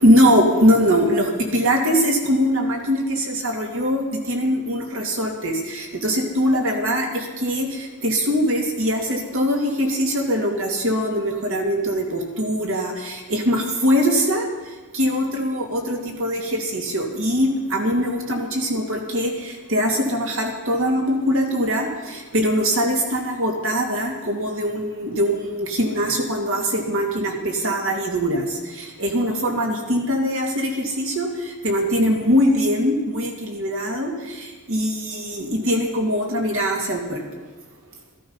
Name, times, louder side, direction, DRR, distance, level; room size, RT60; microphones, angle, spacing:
voice 1, 0.0-37.4, equal, 65° right, 1 dB, 2.7 m, -22 dB
15.0 x 14.0 x 5.7 m, 1.2 s
head